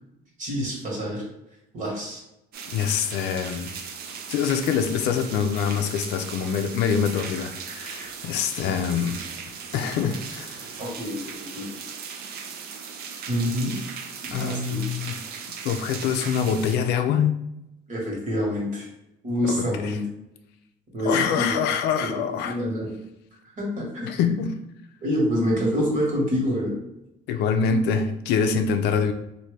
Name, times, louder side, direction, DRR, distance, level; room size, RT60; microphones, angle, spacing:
voice 1, 0.4-1.2 1.7-2.2 10.8-11.7 13.3-13.8 14.3-14.8 17.9-18.9 19.2-20.0 20.9-21.5 22.0-22.1 22.4-22.9 23.6-24.2 25.0-26.7, equal, 50° right, 1.5 m, -26 dB
sound 1, 2.5-16.8, right 6 dB, 65° right, 0.5 m, -38 dB
voice 2, 2.7-3.9 4.3-9.2 9.7-10.8 14.3-15.2 15.6-17.3 19.5-20.0 21.0-22.6 24.0-24.6 27.3-29.1, left 7 dB, 80° left, 0.4 m, -25 dB
2.8 x 2.6 x 3.2 m
cardioid pair, 110°, 17 cm